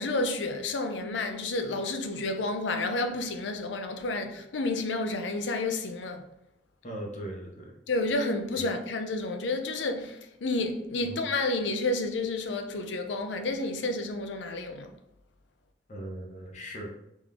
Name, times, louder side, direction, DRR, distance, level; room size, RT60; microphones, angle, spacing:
voice 1, 0.0-6.2 7.9-14.9, left 2 dB, 90° left, 0.5 m, -30 dB
voice 2, 6.8-7.7 8.6-8.7 11.0-11.2 15.9-16.9, right 1 dB, 40° left, 0.8 m, -39 dB
3.7 x 3.1 x 3.6 m
head